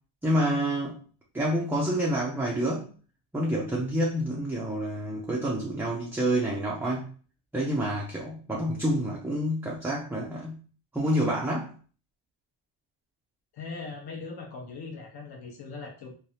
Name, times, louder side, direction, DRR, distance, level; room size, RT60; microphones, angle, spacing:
voice 1, 0.2-1.0 1.3-2.9 3.3-7.1 7.5-10.5 10.9-11.7, equal, 5° right, -4 dB, 0.4 m, -28 dB
voice 2, 13.5-16.1, left 4 dB, 50° left, 0 dB, 1.1 m, -40 dB
3.2 x 2.3 x 2.7 m, 0.40 s
cardioid pair, 115°, 47 cm